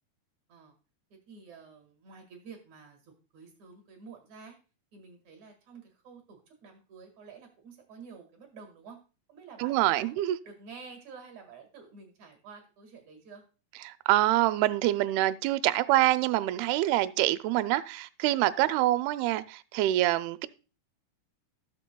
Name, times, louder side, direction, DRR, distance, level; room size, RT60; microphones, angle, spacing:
voice 1, 1.1-4.6 4.9-9.0 9.3-10.1 10.4-13.4, right 5 dB, 55° right, 2.8 m, -50 dB
voice 2, 9.6-10.4 13.9-20.5, right 15 dB, 85° right, 2.5 m, -26 dB
18.0 x 6.8 x 2.2 m
omnidirectional pair, 4.5 m